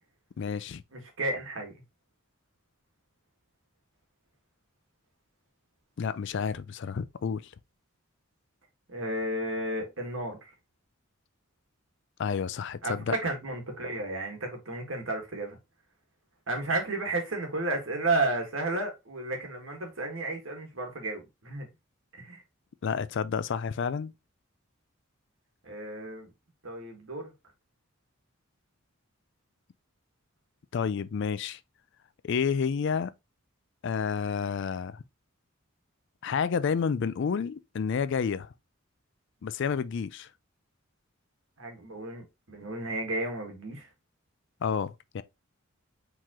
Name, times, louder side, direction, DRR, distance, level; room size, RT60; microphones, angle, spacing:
voice 1, 0.4-0.8 6.0-7.5 12.2-13.2 22.8-24.1 30.7-31.6 32.2-33.1 33.8-35.0 36.2-38.5 39.4-40.3 44.6-45.2, left 6 dB, 55° left, 0.4 m, -30 dB
voice 2, 0.9-1.7 8.9-10.4 12.8-15.5 16.5-21.7 22.2-22.4 25.6-26.3 26.6-27.3 41.6-43.9, right 2 dB, 65° right, 1.7 m, -32 dB
4.6 x 3.8 x 3.0 m
head